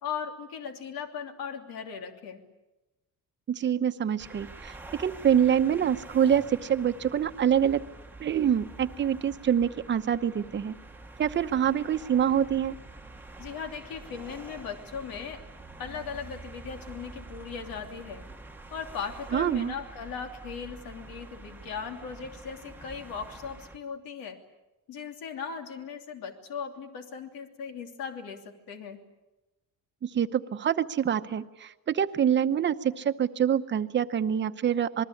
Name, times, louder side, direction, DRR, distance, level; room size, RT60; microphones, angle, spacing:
voice 1, 0.0-2.4 13.4-15.4 15.8-18.2 18.7-24.4 24.9-29.0, left 6 dB, 85° left, 5 dB, 3.1 m, -38 dB
voice 2, 3.5-7.8 8.2-10.7 11.2-12.8 19.3-19.7 30.0-35.0, right 9 dB, 35° right, 11 dB, 0.9 m, -26 dB
sound 1, 4.2-23.8, right 2 dB, 5° right, 1.1 m, -47 dB
27.5 x 20.5 x 8.6 m, 1.0 s
cardioid pair, 165°, 34 cm